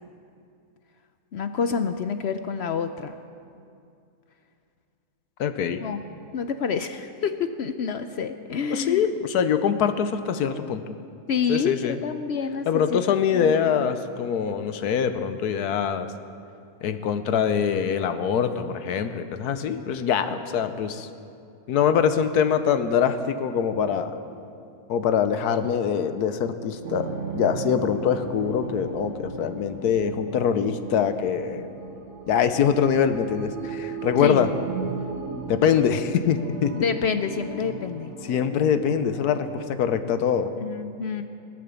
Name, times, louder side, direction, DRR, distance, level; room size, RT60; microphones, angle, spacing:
voice 1, 1.3-3.1 5.8-6.0 6.3-9.1 11.3-13.9 34.2-34.5 36.7-38.1 40.6-41.2, left 6 dB, 65° left, 9 dB, 0.6 m, -28 dB
voice 2, 5.4-5.8 8.7-10.8 11.5-12.0 12.7-16.1 16.8-21.1 21.7-24.1 24.9-31.7 32.3-34.5 35.5-36.7 38.3-40.5, left 7 dB, 80° left, 10 dB, 1.3 m, -24 dB
sound 1, 26.8-39.5, right 4 dB, 80° right, 1.9 m, -36 dB
19.5 x 8.8 x 7.0 m, 2.5 s
omnidirectional pair, 1.7 m